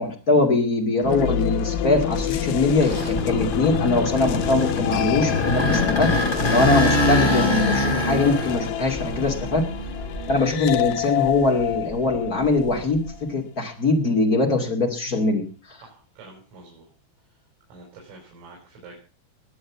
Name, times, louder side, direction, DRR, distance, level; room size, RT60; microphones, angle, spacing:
voice 1, 0.0-9.6 10.3-15.8, left 2 dB, 40° left, 2 dB, 1.2 m, -22 dB
sound 1, 1.0-13.2, left 11 dB, 70° left, 2.7 m, -28 dB
sound 2, 1.8-10.8 11.3-13.1, left 1 dB, 10° left, 3.2 m, -25 dB
voice 2, 15.8-16.9 17.7-19.0, right 3 dB, 85° right, -1 dB, 7.6 m, -46 dB
21.5 x 7.9 x 7.1 m, 0.38 s
omnidirectional pair, 5.8 m